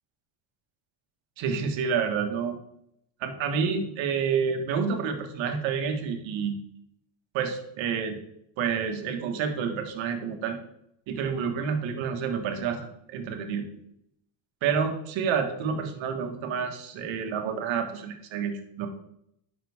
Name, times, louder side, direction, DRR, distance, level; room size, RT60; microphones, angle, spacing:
voice 1, 1.4-2.6 3.2-6.6 7.3-8.2 8.6-10.6 11.1-13.6 14.6-18.9, right 6 dB, 65° right, 5 dB, 1.7 m, -29 dB
10.5 x 6.0 x 3.6 m, 0.76 s
supercardioid pair, 105°, 49 cm